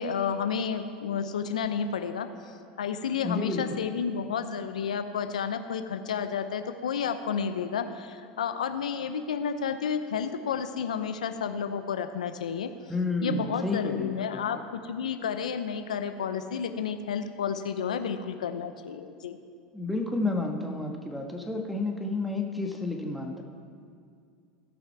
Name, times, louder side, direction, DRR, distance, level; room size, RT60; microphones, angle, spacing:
voice 1, 0.0-12.7 13.2-19.4, left 7 dB, 90° left, 9 dB, 0.5 m, -31 dB
voice 2, 3.2-3.8 12.9-14.4 19.7-23.4, left 2 dB, ahead, 3 dB, 1.4 m, -31 dB
16.5 x 5.8 x 4.6 m, 2.2 s
hypercardioid pair, 90°, 4 cm